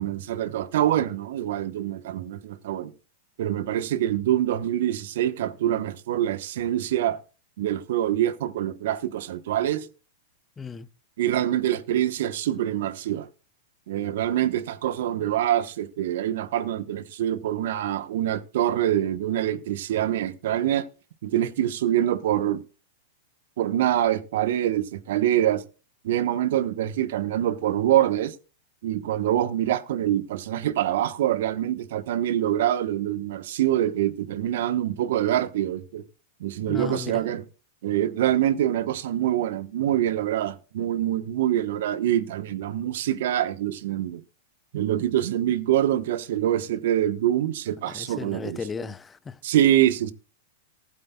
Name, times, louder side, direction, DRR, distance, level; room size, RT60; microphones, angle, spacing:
voice 1, 0.0-2.9 3.4-7.2 7.6-9.9 11.2-13.3 13.9-20.8 21.2-22.6 23.6-25.6 26.0-28.4 28.8-36.0 36.4-37.4 37.8-44.2 44.7-48.6 49.4-50.1, right 12 dB, 65° right, 1.0 m, -25 dB
voice 2, 10.6-10.9 36.7-37.2 47.9-49.4, left 5 dB, 15° left, 0.6 m, -35 dB
19.5 x 8.6 x 2.3 m
hypercardioid pair, 100°, 0 cm